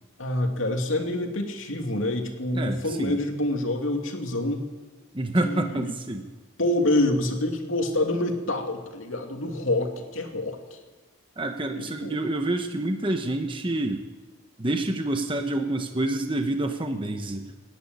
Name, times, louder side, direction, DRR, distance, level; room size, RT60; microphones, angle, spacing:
voice 1, 0.2-4.7 5.4-5.9 6.6-10.8 11.7-12.2, left 1 dB, 75° left, 4 dB, 2.7 m, -27 dB
voice 2, 2.5-3.2 5.1-6.3 11.4-14.1 14.6-17.5, right 1 dB, 25° right, 5 dB, 1.0 m, -28 dB
27.0 x 11.0 x 9.4 m, 1.3 s
head